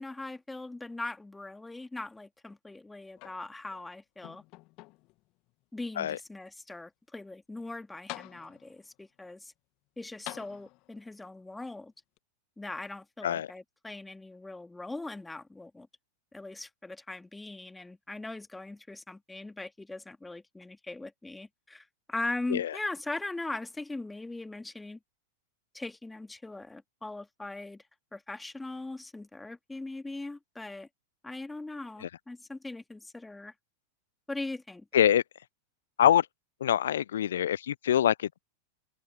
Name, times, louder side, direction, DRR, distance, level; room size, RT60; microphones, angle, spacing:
voice 1, 0.0-4.4 5.7-9.5 10.0-11.9 12.6-15.9 16.3-25.0 25.7-27.8 28.1-30.9 31.2-33.5 34.3-34.9, left 2 dB, 5° left, 2.6 m, -40 dB
sound 1, 3.2-3.8 4.2-5.2 5.9-6.0 7.6-7.7 8.1-8.9 10.2-11.1 12.2-12.3, left 22 dB, 40° left, 2.2 m, -46 dB
voice 2, 36.6-38.4, left 10 dB, 60° left, 0.3 m, -25 dB
open air
figure-of-eight pair, 90°, 0 cm